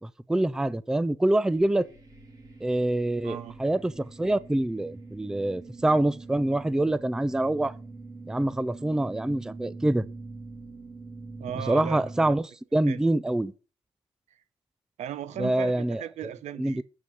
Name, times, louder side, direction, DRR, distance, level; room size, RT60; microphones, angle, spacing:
voice 1, 0.0-1.9 2.6-7.7 8.3-10.0 11.7-13.5 15.4-16.0 16.6-16.8, right 1 dB, 5° right, 0.4 m, -25 dB
sound 1, 1.5-12.3, right 3 dB, 30° right, 2.8 m, -44 dB
voice 2, 3.2-3.6 11.4-12.0 12.9-13.0 14.3-14.4 15.0-16.8, right 10 dB, 75° right, 0.8 m, -36 dB
7.6 x 6.3 x 8.1 m
cardioid pair, 130°, 12 cm